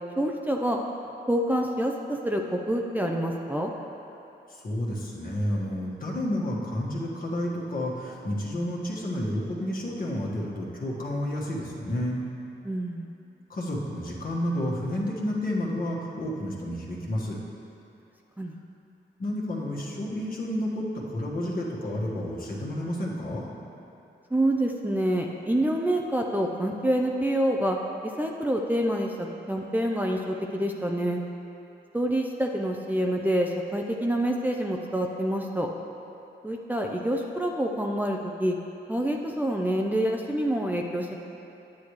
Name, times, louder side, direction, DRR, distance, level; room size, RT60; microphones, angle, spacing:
voice 1, 0.2-0.8 1.3-3.7 12.6-13.1 18.4-18.5 24.3-27.8 28.2-31.2 31.9-35.7 36.4-38.5 38.9-41.2, right 1 dB, 10° right, 0 dB, 0.5 m, -27 dB
voice 2, 4.5-12.2 13.5-17.4 19.2-23.4, left 1 dB, 50° left, -4 dB, 1.5 m, -30 dB
9.3 x 8.3 x 3.2 m, 2.9 s
cardioid pair, 75°, 19 cm